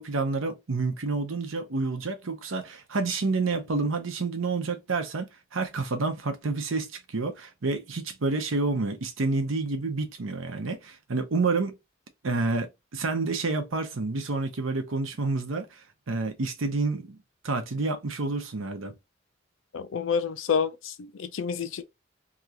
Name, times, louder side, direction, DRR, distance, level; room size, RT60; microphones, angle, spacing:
voice 1, 0.0-11.7 12.2-15.8 16.1-17.2 17.4-18.9, right 3 dB, 90° right, 0.7 m, -29 dB
voice 2, 19.7-21.8, left 6 dB, 80° left, 0.4 m, -29 dB
2.9 x 2.4 x 2.8 m
head